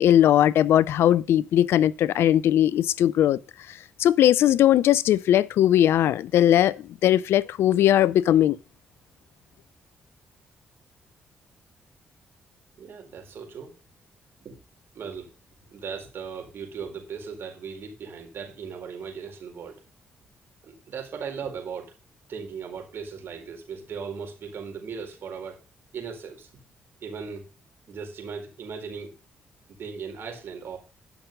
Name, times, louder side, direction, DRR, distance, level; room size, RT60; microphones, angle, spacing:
voice 1, 0.0-3.4 4.0-8.6, left 11 dB, 75° left, 0.4 m, -19 dB
voice 2, 12.8-13.7 14.4-14.6 14.9-15.3 15.7-19.8 20.6-21.9 22.3-25.6 25.9-26.5 27.0-27.5 27.9-29.2 29.7-30.8, right 6 dB, 65° right, 4.2 m, -37 dB
11.5 x 6.1 x 5.2 m
supercardioid pair, 50°, 4 cm